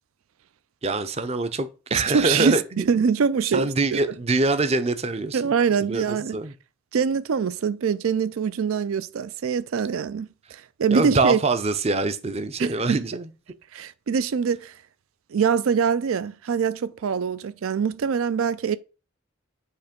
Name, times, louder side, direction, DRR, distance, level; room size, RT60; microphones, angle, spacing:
voice 1, 0.8-2.8 3.5-5.5 5.8-6.5 10.9-13.3, right 3 dB, 30° right, 0.5 m, -24 dB
voice 2, 1.9-4.2 5.3-6.4 6.9-11.4 12.6-13.0 13.7-14.7 15.3-18.8, right 6 dB, 85° right, 0.4 m, -24 dB
8.3 x 2.9 x 5.1 m
head